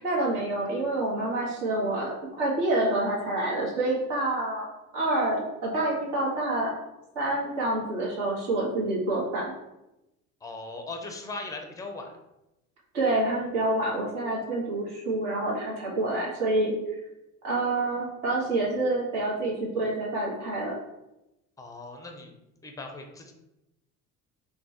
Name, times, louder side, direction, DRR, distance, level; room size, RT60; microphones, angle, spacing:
voice 1, 0.0-2.1 2.4-4.7 4.9-6.7 7.1-9.5 12.9-16.7 17.4-20.8, right 2 dB, 70° right, -4 dB, 1.2 m, -27 dB
voice 2, 10.4-12.1 21.6-22.3 22.6-23.3, left 3 dB, 10° left, 3 dB, 0.4 m, -39 dB
3.0 x 2.1 x 2.8 m, 0.92 s
hypercardioid pair, 55°, 44 cm